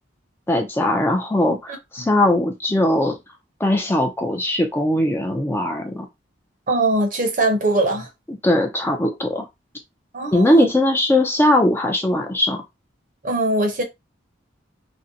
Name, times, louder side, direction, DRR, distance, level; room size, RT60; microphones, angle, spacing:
voice 1, 0.5-3.2 3.6-6.1 8.3-9.5 10.3-12.6, left 1 dB, 10° left, 0.4 m, -20 dB
voice 2, 6.7-8.1 10.1-10.7 13.2-13.8, right 2 dB, 45° right, 0.6 m, -21 dB
2.5 x 2.1 x 2.6 m
head